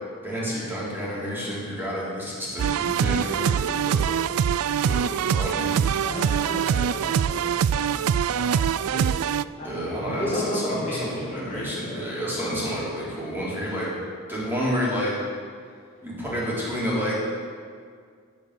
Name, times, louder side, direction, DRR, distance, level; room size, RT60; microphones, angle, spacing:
voice 1, 0.2-4.1 4.8-5.8 9.6-13.9 14.3-15.1 16.0-17.1, equal, 10° right, -8 dB, 3.7 m, -29 dB
sound 1, 2.6-9.4, right 8 dB, 75° right, 0.3 m, -24 dB
voice 2, 6.0-9.1 9.6-9.7 10.1-12.0, left 1 dB, 35° left, -5 dB, 2.0 m, -34 dB
9.5 x 8.2 x 8.2 m, 2.1 s
head